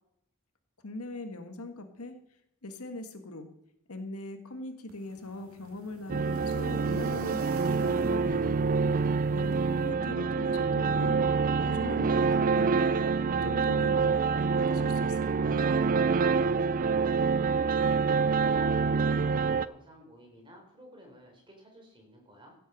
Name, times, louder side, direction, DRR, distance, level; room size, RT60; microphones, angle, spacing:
voice 1, 0.8-2.2 2.6-3.5 3.9-15.8, left 2 dB, 80° left, 7 dB, 1.7 m, -41 dB
sound 1, 4.9-9.9, right 2 dB, 70° right, 2.3 m, -49 dB
sound 2, 6.1-19.7, right 5 dB, 40° right, 0.4 m, -26 dB
voice 2, 9.6-10.3 16.6-22.6, equal, 25° right, 1 dB, 4.2 m, -53 dB
16.0 x 7.8 x 6.3 m, 0.78 s
head